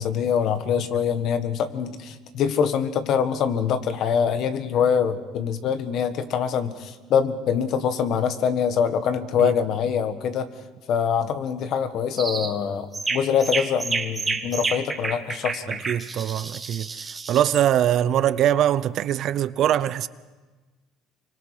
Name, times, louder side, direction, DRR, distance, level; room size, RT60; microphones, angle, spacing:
voice 1, 0.0-10.5 10.9-15.8, left 7 dB, 60° left, 1.6 m, -24 dB
sound 1, 12.2-12.5 12.9-17.7, right 4 dB, 20° right, 1.6 m, -30 dB
voice 2, 15.7-20.1, right 11 dB, 55° right, 0.7 m, -23 dB
26.5 x 24.0 x 5.0 m
supercardioid pair, 100°, 0 cm